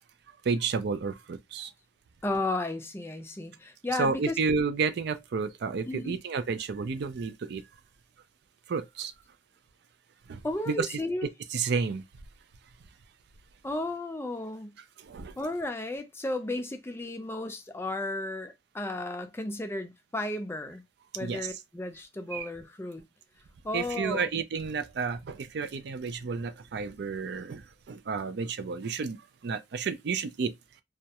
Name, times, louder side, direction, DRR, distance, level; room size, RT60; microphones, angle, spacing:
voice 1, 0.4-1.7 4.0-7.6 8.7-9.1 10.3-10.4 10.7-11.0 11.5-12.0 15.0-15.3 21.2-21.5 22.3-22.5 23.7-29.2 29.4-30.5, right 5 dB, 65° right, 0.4 m, -31 dB
voice 2, 2.2-4.3 5.9-6.2 10.4-11.3 13.6-14.8 15.4-20.8 21.1-23.0 23.6-24.3, left 2 dB, 15° left, 0.4 m, -34 dB
2.3 x 2.0 x 2.8 m
head